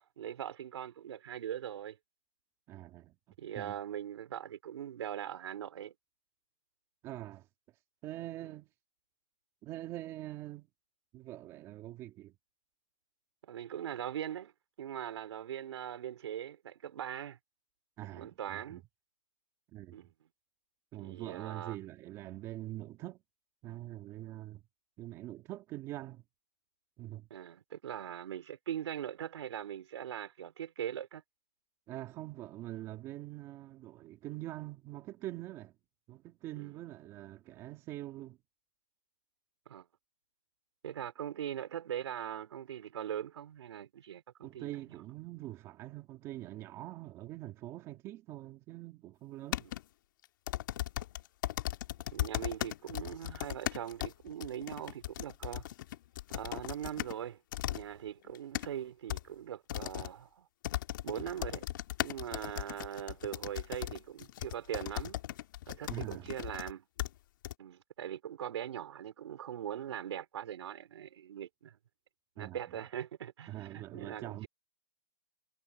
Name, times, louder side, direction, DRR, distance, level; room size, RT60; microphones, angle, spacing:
voice 1, 0.0-2.0 3.4-5.9 8.4-8.6 13.5-14.5 14.8-17.4 18.1-18.8 19.9-20.1 21.0-21.8 27.3-31.2 36.6-36.8 39.7-39.9 40.8-44.8 49.6-49.7 52.1-55.7 56.3-57.4 57.7-60.5 61.0-61.7 62.0-65.2 65.7-66.8 67.6-71.8 72.4-74.5, right 10 dB, 50° right, 3.6 m, -41 dB
voice 2, 2.7-3.2 3.6-3.7 7.0-7.5 8.0-8.7 9.6-10.7 11.1-12.3 18.0-18.8 19.7-20.1 20.9-23.2 23.6-24.6 25.0-26.2 27.0-27.3 31.9-35.7 36.1-38.4 44.4-49.6 65.9-66.3 72.4-72.6 73.5-74.5, right 15 dB, 15° right, 2.1 m, -44 dB
sound 1, 49.5-49.8 50.5-57.2 57.5-57.8 58.3-58.7 59.1-59.2 59.7-60.1 60.6-66.7 67.0-67.1 67.4-67.5, left 14 dB, 35° left, 1.6 m, -37 dB
hypercardioid pair, 170°, 18 cm